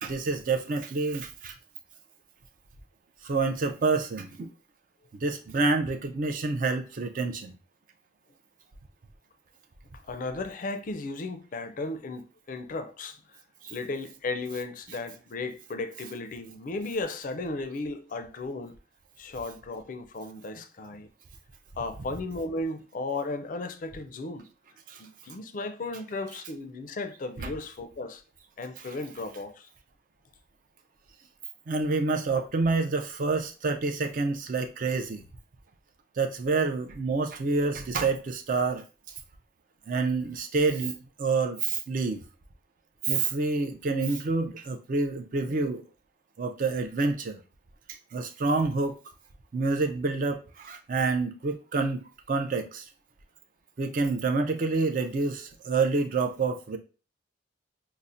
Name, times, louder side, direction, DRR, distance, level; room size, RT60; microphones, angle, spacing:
voice 1, 0.0-1.6 3.2-4.5 5.2-7.5 13.6-13.7 26.3-26.4 27.4-27.6 28.8-29.1 31.7-35.2 36.2-38.8 39.9-42.2 43.1-45.8 46.4-47.4 48.1-48.9 49.5-52.8 53.8-56.8, right 3 dB, 45° right, 0.4 m, -28 dB
voice 2, 10.1-13.4 13.7-18.8 19.2-21.1 21.8-24.5 25.0-28.2 28.6-29.7, left 3 dB, 45° left, 0.4 m, -35 dB
5.5 x 2.1 x 2.5 m
head